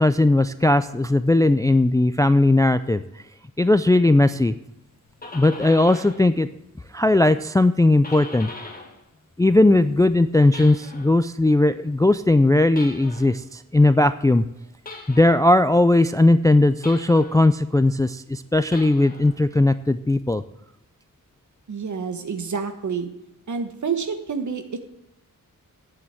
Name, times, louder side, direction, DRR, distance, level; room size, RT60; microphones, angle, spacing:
voice 1, 0.0-3.0 3.6-4.5 5.3-6.5 6.9-8.5 9.4-14.4 15.1-20.4, left 2 dB, 10° left, 13 dB, 0.3 m, -18 dB
sound 1, 4.9-6.3 6.6-9.0 9.4-11.2 12.7-13.4 14.8-15.5 16.8-17.5 18.6-19.4, left 2 dB, 25° left, 1.8 m, -41 dB
voice 2, 21.7-23.1 23.5-24.9, right 5 dB, 60° right, 8 dB, 1.4 m, -28 dB
8.7 x 7.6 x 8.2 m, 0.85 s
wide cardioid pair, 155°, 34 cm